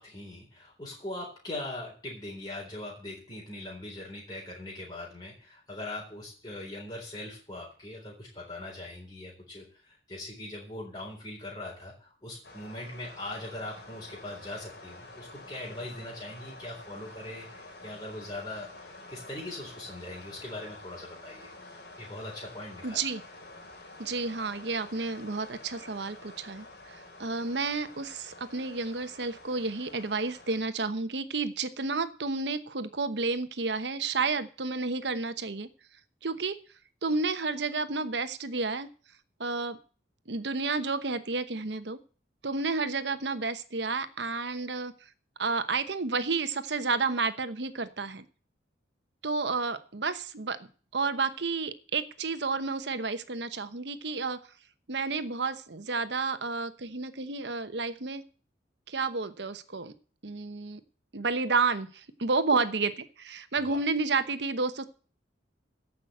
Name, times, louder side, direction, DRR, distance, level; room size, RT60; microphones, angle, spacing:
voice 1, 0.0-21.5 22.0-23.0 63.7-63.8, left 1 dB, 25° left, -3 dB, 4.0 m, -41 dB
sound 1, 12.4-30.6, left 2 dB, 65° left, 3.1 m, -49 dB
voice 2, 22.8-23.2 24.0-35.7 36.2-36.6 37.0-38.9 39.4-39.8 40.3-42.0 42.4-44.9 45.4-48.2 49.2-50.6 50.9-54.4 54.9-58.2 58.9-59.9 60.2-60.8 61.1-64.9, right 4 dB, 75° right, 11 dB, 1.0 m, -31 dB
14.5 x 5.9 x 7.8 m, 0.40 s
head